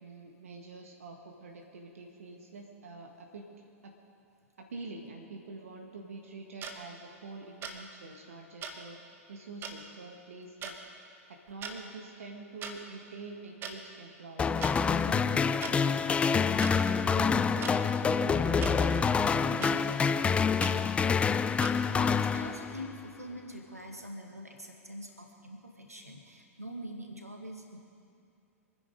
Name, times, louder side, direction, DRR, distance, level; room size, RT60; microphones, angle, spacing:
voice 1, 0.0-3.5 3.8-3.9 4.6-9.0 9.3-10.8 11.3-16.1 16.6-20.4, right 3 dB, 65° right, 2 dB, 1.7 m, -46 dB
sound 1, 6.6-6.7 7.6-7.8 8.6-8.7 9.6-9.7 10.6-10.8 11.5-11.7 12.6-12.7 13.6-13.7 14.6-14.7 15.6-15.7 16.6-16.7 17.6-17.7 18.6-18.7 19.6-19.7 20.6-20.7 21.6-21.7, right 6 dB, 30° right, 1.7 m, -39 dB
sound 2, 14.4-23.0, left 6 dB, 15° left, 0.4 m, -27 dB
voice 2, 21.9-27.8, equal, 90° right, 2 dB, 1.9 m, -44 dB
26.0 x 10.0 x 5.2 m, 2.5 s
figure-of-eight pair, 95°, 8 cm